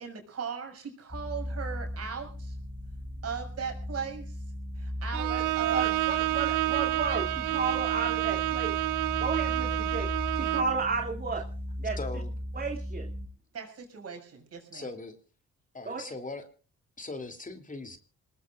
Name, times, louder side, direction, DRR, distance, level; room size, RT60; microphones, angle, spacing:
voice 1, 0.0-2.6 3.2-4.4 4.7-5.3 5.6-5.9 13.5-14.9, right 6 dB, 55° right, 4 dB, 6.5 m, -38 dB
sound 1, 1.1-13.3, left 1 dB, 5° left, 4.7 m, -37 dB
Bowed string instrument, 5.1-10.8, right 18 dB, 90° right, 0.8 m, -29 dB
voice 2, 5.7-8.7 9.2-10.1 10.3-11.5 11.8-12.0 12.5-13.1 15.9-16.0, right 4 dB, 30° right, 2 dB, 2.7 m, -32 dB
voice 3, 12.0-12.3 14.7-15.2 15.7-16.5 17.0-18.0, left 3 dB, 25° left, 7 dB, 3.1 m, -39 dB
26.5 x 20.0 x 2.5 m, 0.38 s
cardioid pair, 90°, 30 cm